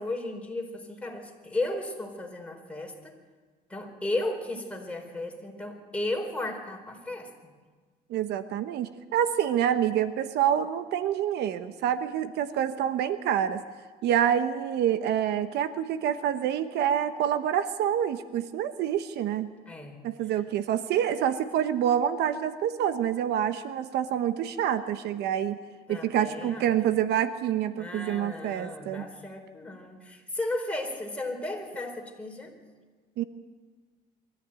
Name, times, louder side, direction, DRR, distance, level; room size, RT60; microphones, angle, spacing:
voice 1, 0.0-3.1 3.7-7.5 19.7-20.0 25.9-26.7 27.8-32.5, left 2 dB, 5° left, 1 dB, 4.5 m, -34 dB
voice 2, 8.1-13.6 14.0-19.5 20.0-25.6 25.9-29.1 33.2-33.3, right 10 dB, 75° right, 11 dB, 1.1 m, -27 dB
23.5 x 14.5 x 9.1 m, 1.5 s
cardioid pair, 110°, 17 cm